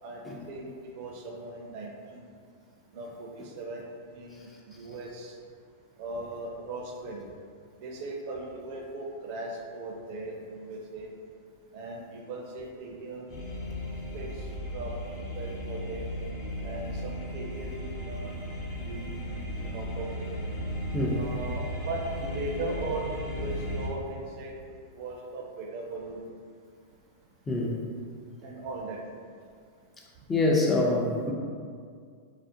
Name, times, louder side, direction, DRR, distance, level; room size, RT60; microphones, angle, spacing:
voice 1, 0.5-2.3 2.9-3.8 4.1-5.3 6.0-7.2 7.8-11.1 11.7-13.4 14.1-14.5 14.7-14.9 15.3-16.1 16.6-18.4 18.8-20.3 21.2-24.5 24.9-26.3 28.4-29.0, right 2 dB, 55° right, 0 dB, 0.4 m, -38 dB
sound 1, 13.3-23.9, equal, 40° left, 0.9 m, -35 dB
voice 2, 30.3-31.3, left 2 dB, 20° left, -2 dB, 0.4 m, -25 dB
2.4 x 2.1 x 2.6 m, 2.1 s
hypercardioid pair, 100°, 0 cm